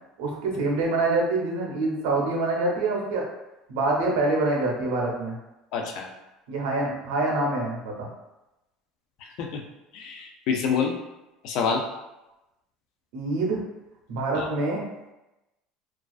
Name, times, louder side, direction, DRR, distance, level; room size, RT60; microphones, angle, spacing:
voice 1, 0.2-3.2 3.7-5.4 6.5-8.1 13.1-13.6 14.1-14.8, right 2 dB, 85° right, -1 dB, 0.6 m, -25 dB
voice 2, 5.7-6.1 9.2-9.6 9.9-11.0 11.4-11.8 14.3-14.5, left 6 dB, 60° left, 3 dB, 0.4 m, -27 dB
2.3 x 2.3 x 2.3 m, 0.97 s
supercardioid pair, 125°, 0 cm